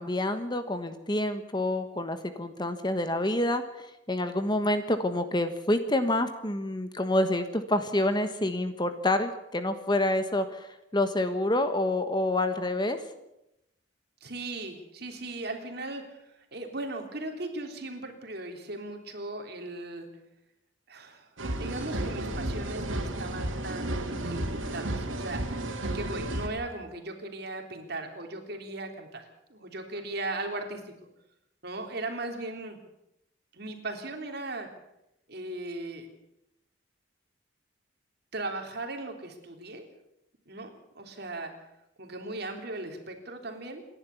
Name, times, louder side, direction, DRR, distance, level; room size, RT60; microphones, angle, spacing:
voice 1, 0.0-10.7 10.9-13.0, left 1 dB, 20° left, 9 dB, 1.4 m, -28 dB
voice 2, 14.2-20.1 20.9-25.7 25.9-29.2 29.5-30.9 31.6-32.8 33.5-34.7 35.3-36.1 38.3-39.9 40.5-40.7 40.9-41.5 42.0-43.8, right 2 dB, 55° right, 4 dB, 3.4 m, -38 dB
sound 1, 21.4-26.5, right 1 dB, 90° right, 2.9 m, -32 dB
27.5 x 11.0 x 8.4 m, 0.86 s
head